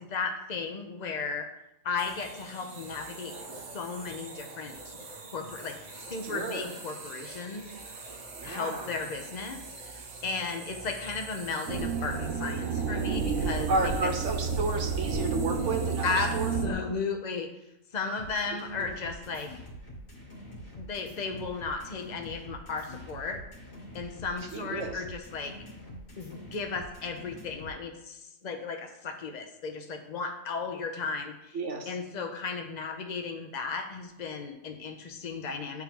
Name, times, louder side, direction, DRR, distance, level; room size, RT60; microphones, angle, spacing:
voice 1, 0.0-1.5 1.8-4.9 5.3-7.9 8.4-14.1 16.0-16.3 16.6-17.5 17.9-19.5 20.8-23.4 23.9-25.5 26.2-31.6 31.9-35.8, left 4 dB, 45° left, 5 dB, 0.6 m, -35 dB
sound 1, 2.0-16.7, right 3 dB, 40° right, 0.6 m, -45 dB
voice 2, 6.2-6.7 8.3-8.9 13.7-16.5 18.5-18.9 24.5-25.0 31.5-31.9, right 3 dB, 65° right, 4 dB, 1.1 m, -32 dB
sound 2, 11.7-16.7, right 5 dB, 80° right, 1.2 m, -30 dB
sound 3, 18.2-27.7, equal, 75° left, 2.1 m, -46 dB
9.5 x 3.8 x 2.9 m, 0.86 s
omnidirectional pair, 1.4 m